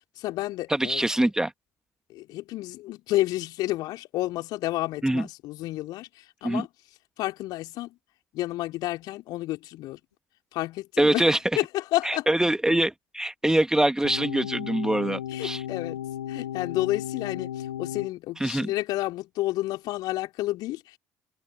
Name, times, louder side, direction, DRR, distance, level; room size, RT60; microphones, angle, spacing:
voice 1, 0.2-1.0 2.1-6.7 7.2-8.0 8.3-10.0 10.5-12.3 15.3-16.0 16.3-21.0, left 17 dB, 60° left, 4.2 m, -30 dB
voice 2, 0.7-1.5 5.0-5.3 6.4-6.6 11.0-11.4 12.0-15.6 18.4-18.7, right 1 dB, 10° right, 2.1 m, -24 dB
sound 1, 14.0-18.1, left 11 dB, 75° left, 2.3 m, -35 dB
figure-of-eight pair, 50°, 8 cm